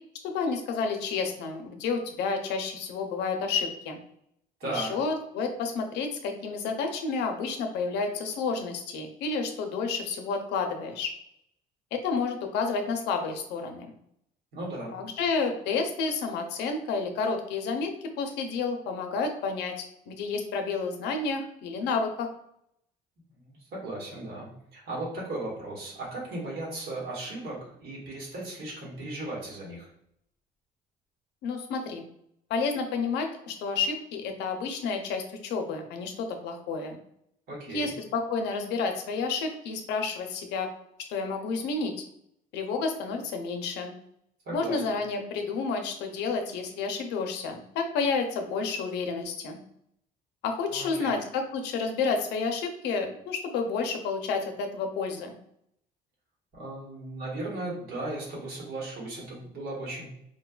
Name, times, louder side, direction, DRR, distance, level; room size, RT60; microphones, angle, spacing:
voice 1, 0.2-4.0 4.7-11.1 11.9-13.9 14.9-17.9 18.2-19.7 20.1-22.3 31.4-32.0 32.5-37.0 37.7-40.7 41.1-41.9 42.5-43.9 44.5-49.6 50.4-55.3, left 4 dB, 85° left, 5 dB, 0.6 m, -30 dB
voice 2, 4.6-4.9 14.5-14.9 23.4-29.9 37.5-37.9 44.4-44.8 50.7-51.1 56.5-60.1, right 2 dB, 70° right, -3 dB, 1.4 m, -36 dB
4.3 x 2.2 x 2.3 m, 0.72 s
cardioid pair, 110°, 17 cm